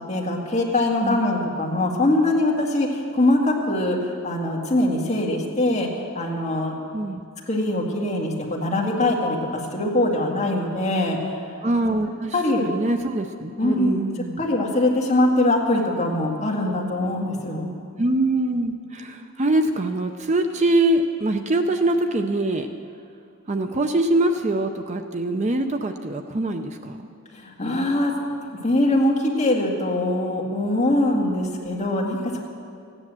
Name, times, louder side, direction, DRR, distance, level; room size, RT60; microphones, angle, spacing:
voice 1, 0.0-5.9 6.1-6.7 7.5-11.2 12.3-12.6 13.6-14.0 14.4-17.7 27.3-28.1 28.6-32.4, left 1 dB, 30° left, -2 dB, 1.9 m, -22 dB
voice 2, 11.6-12.3 12.6-14.4 18.0-22.7 23.5-27.1, right 2 dB, 30° right, 6 dB, 0.5 m, -23 dB
14.5 x 9.9 x 7.5 m, 2.4 s
head